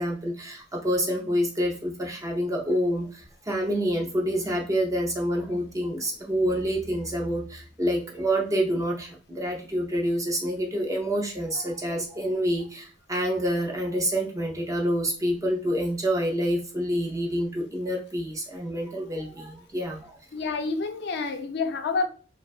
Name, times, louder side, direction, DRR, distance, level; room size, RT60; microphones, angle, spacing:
voice 1, 0.0-20.2, equal, 15° right, 0 dB, 0.4 m, -27 dB
voice 2, 20.3-22.1, left 4 dB, 55° left, 7 dB, 0.3 m, -28 dB
2.5 x 2.1 x 2.3 m, 0.39 s
head